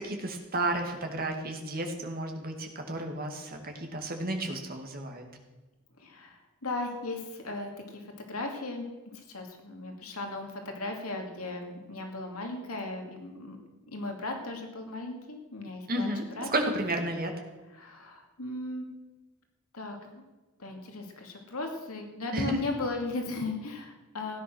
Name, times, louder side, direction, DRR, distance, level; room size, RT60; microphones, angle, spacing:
voice 1, 0.0-5.2 15.9-16.2 16.5-17.3 22.3-22.6, right 1 dB, 45° right, 3 dB, 2.3 m, -32 dB
voice 2, 6.0-13.6 13.9-16.1 16.4-16.5 17.7-18.9 19.7-20.2 20.6-24.4, left 2 dB, 85° left, 2 dB, 2.6 m, -37 dB
16.5 x 10.0 x 6.3 m, 1.2 s
head